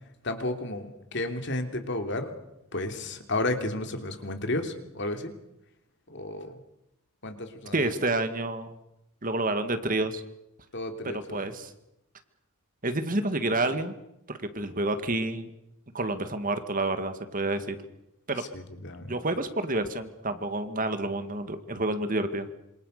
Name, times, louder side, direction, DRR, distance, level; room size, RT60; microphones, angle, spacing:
voice 1, 0.2-2.4 2.7-5.3 6.1-6.6 7.2-7.8 10.7-11.4 18.4-19.1, left 2 dB, 55° left, 6 dB, 3.2 m, -32 dB
voice 2, 7.7-8.7 9.2-10.2 11.1-11.7 12.8-13.9 14.3-15.5 15.9-17.8 18.3-18.4 19.1-22.5, right 2 dB, 40° right, 9 dB, 2.1 m, -29 dB
27.0 x 25.5 x 6.7 m, 0.84 s
head